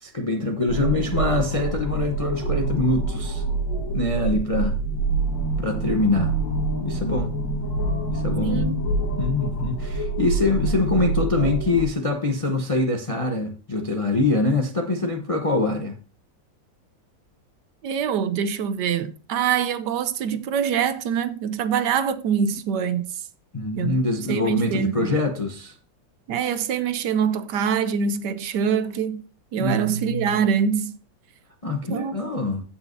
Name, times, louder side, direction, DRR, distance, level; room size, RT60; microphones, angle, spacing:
voice 1, 0.0-3.4 3.9-4.8 5.6-6.3 6.8-7.3 8.1-8.6 9.2-16.0 23.5-25.7 29.6-30.4 31.6-32.6, left 2 dB, 35° left, 0.5 m, -24 dB
sound 1, 0.7-11.9, right 2 dB, 80° left, 2.4 m, -26 dB
voice 2, 8.4-8.8 17.8-23.2 23.8-24.0 24.3-25.1 26.3-29.2 29.5-30.9 31.9-32.2, right 7 dB, 70° right, 1.2 m, -24 dB
15.5 x 5.7 x 2.6 m
omnidirectional pair, 2.0 m